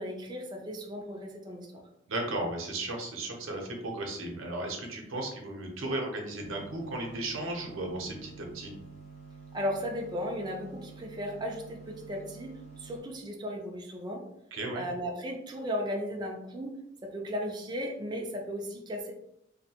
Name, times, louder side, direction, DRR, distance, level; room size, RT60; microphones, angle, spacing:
voice 1, 0.0-1.8 9.5-14.3 14.7-16.7 17.0-19.1, equal, 20° right, 0 dB, 0.3 m, -36 dB
voice 2, 2.1-8.7 14.5-14.9, right 2 dB, 90° right, 1 dB, 0.7 m, -35 dB
sound 1, 6.4-13.0, right 5 dB, 35° left, 0.8 m, -49 dB
2.7 x 2.1 x 2.8 m, 0.78 s
head